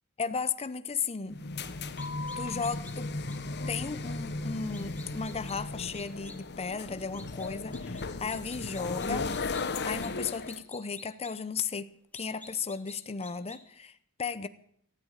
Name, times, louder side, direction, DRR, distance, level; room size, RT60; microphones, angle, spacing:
voice 1, 0.2-1.4 2.4-3.1 3.7-9.3 9.8-14.5, left 5 dB, 25° left, 13 dB, 0.7 m, -35 dB
sound 1, 1.3-10.6, left 3 dB, 50° left, 1.1 m, -36 dB
sound 2, 2.0-2.9 3.3-3.4 4.7-5.6 5.9-6.4 7.1-8.0 8.3-9.6 10.0-11.3 12.1-13.0 13.2-13.6, left 2 dB, 10° left, 2.2 m, -49 dB
19.0 x 13.0 x 4.0 m, 0.67 s
head